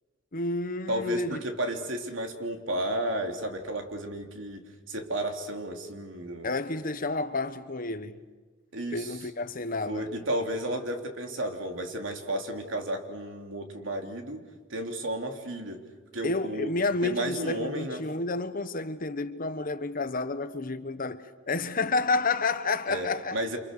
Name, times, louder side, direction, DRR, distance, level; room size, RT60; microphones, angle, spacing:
voice 1, 0.3-1.4 6.4-8.2 8.9-10.1 16.2-23.4, left 3 dB, 45° left, 1.2 m, -30 dB
voice 2, 0.9-4.6 4.9-6.5 8.7-9.2 9.9-14.4 14.7-15.8 16.1-16.7 17.0-18.0 22.9-23.6, right 1 dB, 75° right, 3.4 m, -32 dB
28.5 x 27.0 x 6.9 m
head